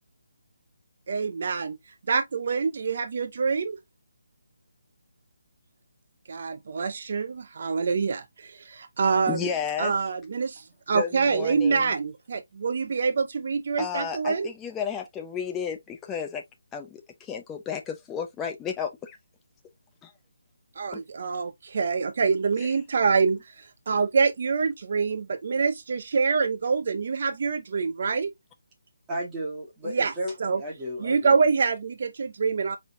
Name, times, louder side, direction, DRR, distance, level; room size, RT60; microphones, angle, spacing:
voice 1, 1.1-1.8 2.1-3.8 6.3-9.5 9.8-14.5 20.8-28.3 29.9-30.1 30.4-30.6 31.0-32.8, right 5 dB, 45° right, 0.5 m, -26 dB
voice 2, 9.3-9.9 10.9-11.9 13.8-16.4 16.7-19.2 20.0-20.1 20.9-21.0 22.6-22.7, left 7 dB, 10° left, 0.7 m, -33 dB
voice 3, 29.1-31.4, equal, 10° right, 1.7 m, -34 dB
5.1 x 4.1 x 2.6 m
hypercardioid pair, 175°, 0 cm